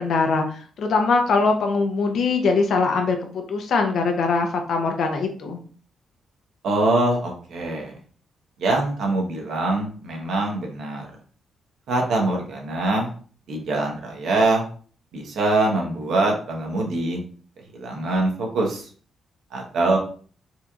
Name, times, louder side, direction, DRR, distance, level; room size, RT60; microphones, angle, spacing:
voice 1, 0.0-5.6, left 4 dB, 70° left, 4 dB, 0.8 m, -22 dB
voice 2, 6.6-7.9 8.6-11.1 11.9-13.1 13.5-14.6 15.1-17.2 17.7-18.9 19.5-20.0, right 2 dB, 75° right, 0 dB, 1.1 m, -23 dB
4.2 x 2.9 x 2.4 m, 0.43 s
cardioid pair, 95°, 0 cm